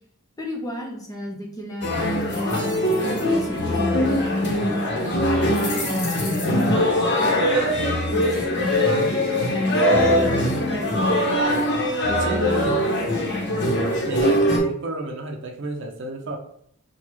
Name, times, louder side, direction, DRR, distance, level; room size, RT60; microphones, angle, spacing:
voice 1, 0.4-1.9 2.3-7.3 8.1-9.2 9.5-11.4 12.1-13.0 13.3-13.6, left 1 dB, 15° left, -1 dB, 0.7 m, -31 dB
sound 1, 1.8-14.6, equal, 55° left, 0.9 m, -22 dB
voice 2, 12.2-12.8 14.0-16.4, right 2 dB, 60° right, 3 dB, 0.6 m, -31 dB
6.3 x 2.3 x 3.0 m, 0.66 s
head